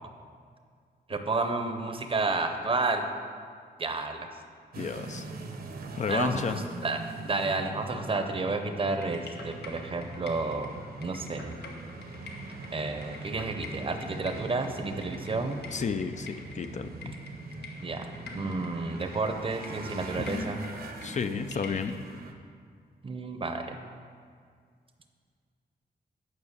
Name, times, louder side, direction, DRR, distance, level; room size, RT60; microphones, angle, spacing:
voice 1, 1.1-3.0 3.8-4.3 6.1-6.4 6.8-11.5 12.7-15.6 17.8-18.1 18.3-20.6 23.0-23.8, right 3 dB, 35° right, 6 dB, 0.7 m, -31 dB
sound 1, 4.7-22.3, right 3 dB, 65° right, 0.9 m, -42 dB
voice 2, 4.8-5.3 5.9-6.6 15.7-17.2 20.2-20.3 21.0-22.0, left 6 dB, 45° left, 9 dB, 0.4 m, -32 dB
sound 2, 9.0-21.9, left 3 dB, 90° left, 1.1 m, -46 dB
9.5 x 5.7 x 6.6 m, 2.1 s
wide cardioid pair, 145°, 17 cm